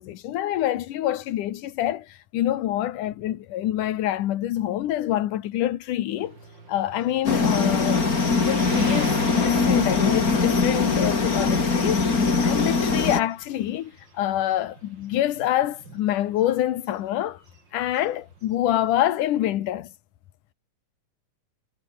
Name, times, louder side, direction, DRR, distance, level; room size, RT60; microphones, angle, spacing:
voice 1, 0.0-6.4 6.7-8.0 8.4-17.4 17.7-19.9, left 13 dB, 75° left, 2.7 m, -26 dB
Motorcycle, 6.2-18.8, right 4 dB, 35° right, 4.4 m, -43 dB
sound 1, 7.2-13.2, left 4 dB, 25° left, 3.0 m, -22 dB
omnidirectional pair, 3.8 m